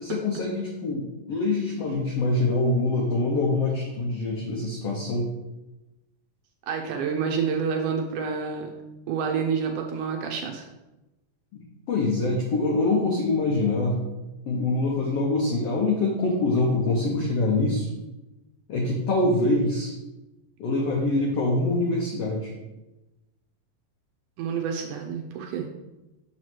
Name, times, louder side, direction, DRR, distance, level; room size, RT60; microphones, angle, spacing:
voice 1, 0.0-5.3 11.5-11.6 11.9-13.9 14.5-17.9 18.7-19.9 20.6-22.5, left 2 dB, 80° left, -2 dB, 1.4 m, -24 dB
voice 2, 6.7-8.7 9.1-10.7 24.4-25.7, right 6 dB, 80° right, 2 dB, 1.9 m, -28 dB
7.5 x 3.0 x 6.1 m, 1.0 s
omnidirectional pair, 4.1 m